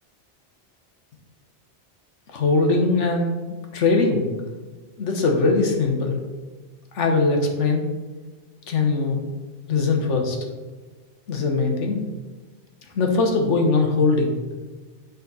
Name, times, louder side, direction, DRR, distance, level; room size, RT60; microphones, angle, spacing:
voice 1, 2.3-3.4 3.7-4.3 5.0-6.2 6.9-7.9 8.7-9.3 9.7-10.4 11.3-12.0 12.9-14.3, left 3 dB, 90° left, 3 dB, 1.4 m, -21 dB
7.0 x 5.2 x 4.1 m, 1.3 s
omnidirectional pair, 1.2 m